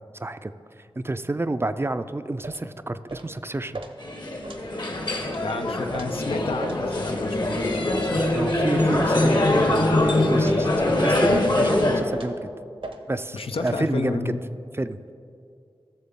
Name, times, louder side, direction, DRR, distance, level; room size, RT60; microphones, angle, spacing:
voice 1, 0.1-0.5 1.0-3.8 8.3-12.5 13.1-14.4 14.7-15.1, right 2 dB, 25° right, 11 dB, 0.4 m, -29 dB
sound 1, 2.4-2.6 3.1-3.3 3.7-3.9 4.4-4.6 5.3-5.4 5.9-6.1 6.6-6.8 7.3-7.5 8.2-8.4 9.0-9.2 9.7-9.9 10.4-10.6 11.3-11.6 12.1-12.4 12.8-13.0 13.6-13.8, right 2 dB, 70° right, 0.9 m, -38 dB
sound 2, 4.0-12.0, left 1 dB, 50° left, 1.2 m, -23 dB
voice 2, 5.4-8.4 13.3-14.4, left 3 dB, 80° left, 6 dB, 0.6 m, -31 dB
14.5 x 6.8 x 3.6 m, 2.4 s
cardioid pair, 45°, 10 cm